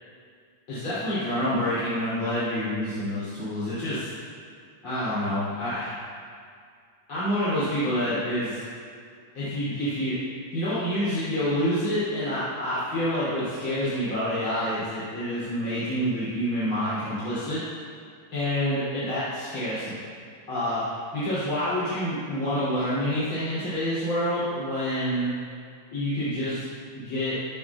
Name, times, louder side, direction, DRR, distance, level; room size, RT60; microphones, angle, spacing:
voice 1, 0.7-4.1 4.8-5.9 7.1-8.6 9.3-10.2 10.5-17.6 18.3-20.0 20.5-20.8 21.1-25.3 25.9-26.7 26.9-27.4, equal, 80° left, -13 dB, 4.3 m, -27 dB
15.5 x 12.0 x 2.4 m, 2.2 s
omnidirectional pair, 2.3 m